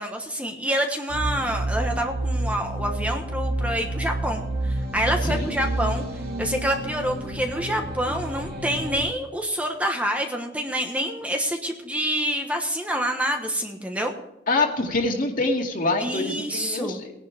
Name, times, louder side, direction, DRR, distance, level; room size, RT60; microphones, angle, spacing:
voice 1, 0.0-6.0 6.4-14.1 16.0-17.0, equal, 10° right, 3 dB, 1.2 m, -27 dB
sound 1, 1.1-9.0, right 1 dB, 55° right, 3.3 m, -29 dB
voice 2, 14.5-17.1, left 2 dB, 45° left, 2 dB, 2.3 m, -25 dB
18.0 x 11.0 x 3.5 m, 0.88 s
head